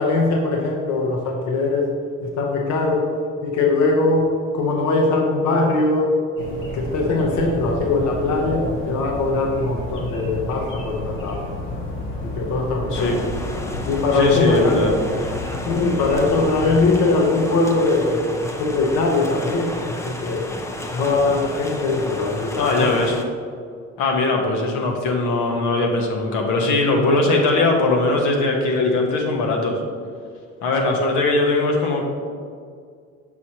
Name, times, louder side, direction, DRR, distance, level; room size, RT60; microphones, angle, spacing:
voice 1, 0.0-1.9 2.2-3.1 3.4-6.2 6.5-11.5 12.2-13.2 13.9-14.8 15.6-20.5 20.9-23.1, left 3 dB, 65° left, 0 dB, 0.9 m, -21 dB
sound 1, 6.4-16.9, left 1 dB, 40° left, 1.1 m, -31 dB
sound 2, 12.9-23.2, left 1 dB, 10° left, 0.3 m, -33 dB
voice 2, 14.1-15.0 22.5-23.2 24.0-29.8 30.6-32.0, left 2 dB, 85° left, 1 dB, 1.1 m, -20 dB
6.2 x 6.2 x 2.9 m, 2.1 s
cardioid pair, 145°, 30 cm